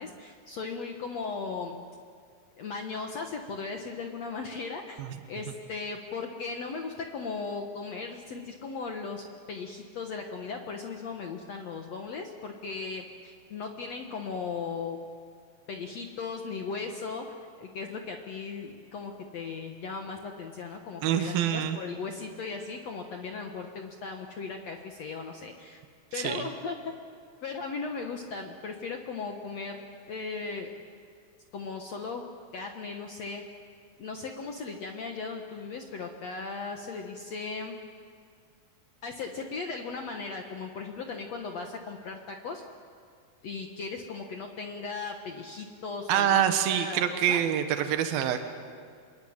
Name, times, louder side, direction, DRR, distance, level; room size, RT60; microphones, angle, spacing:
voice 1, 0.0-1.8 2.6-5.0 5.3-15.0 15.7-17.3 17.6-25.8 26.1-26.9 27.4-30.7 31.5-32.2 32.5-33.4 34.0-37.8 39.0-42.6 43.4-47.4, left 4 dB, 55° left, 3 dB, 2.1 m, -37 dB
voice 2, 21.0-21.8 26.1-26.5 46.1-48.4, right 10 dB, 80° right, 7 dB, 3.1 m, -26 dB
27.5 x 22.0 x 8.9 m, 2.1 s
omnidirectional pair, 4.2 m